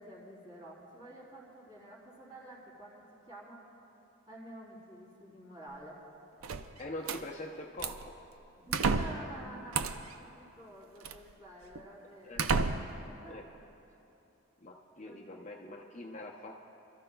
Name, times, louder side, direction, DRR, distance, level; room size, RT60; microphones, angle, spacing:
voice 1, 0.0-3.7 4.3-6.0 8.6-12.5 12.9-13.6 15.0-15.4, right 1 dB, 20° right, -6 dB, 3.6 m, -50 dB
sound 1, 6.4-7.2 7.8-8.1 8.7-9.3 9.7-10.1 11.0-11.2 11.8-11.9 12.4-13.0, right 4 dB, 85° right, 0.5 m, -31 dB
voice 2, 6.8-8.1 12.2-12.5 13.3-13.5 14.6-16.6, left 1 dB, 35° left, 1 dB, 0.6 m, -44 dB
28.0 x 13.5 x 2.3 m, 2.9 s
head